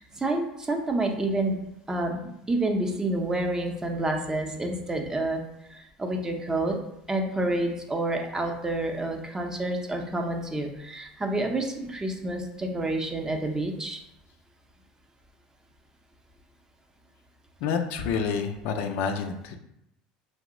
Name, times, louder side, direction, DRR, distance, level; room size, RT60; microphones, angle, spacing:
voice 1, 0.0-1.6 1.9-5.4 5.7-6.8 7.1-14.0, right 2 dB, 15° right, 2 dB, 0.5 m, -29 dB
voice 2, 17.6-19.5, left 6 dB, 65° left, 5 dB, 0.3 m, -28 dB
2.8 x 2.0 x 3.7 m, 0.80 s
hypercardioid pair, 75°, 4 cm